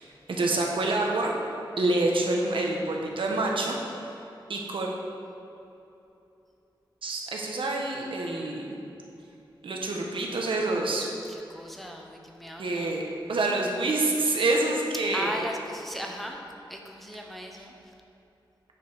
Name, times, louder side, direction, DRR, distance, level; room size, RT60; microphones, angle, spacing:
voice 1, 0.0-1.4 1.8-3.8 4.0-4.1 4.5-4.9 7.0-8.8 9.6-11.1 12.6-13.0 13.3-15.4, right 2 dB, 85° right, 0 dB, 1.2 m, -27 dB
voice 2, 11.3-13.0 15.1-16.4 16.7-17.9, equal, ahead, 1 dB, 0.9 m, -37 dB
9.9 x 5.3 x 5.0 m, 2.9 s
wide cardioid pair, 115°, 9 cm